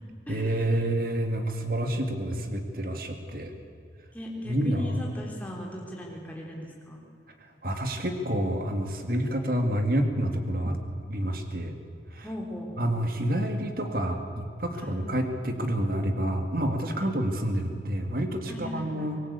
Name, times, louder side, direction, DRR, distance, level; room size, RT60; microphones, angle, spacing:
voice 1, 0.3-3.5 4.4-5.1 7.6-10.8 11.1-11.7 12.1-12.3 12.8-19.2, right 1 dB, 50° right, 5 dB, 2.1 m, -28 dB
voice 2, 4.1-7.0 12.2-12.9 14.7-15.0 17.0-17.1 18.5-19.1, left 1 dB, 10° left, -1 dB, 3.8 m, -38 dB
24.5 x 19.0 x 8.4 m, 2.4 s
head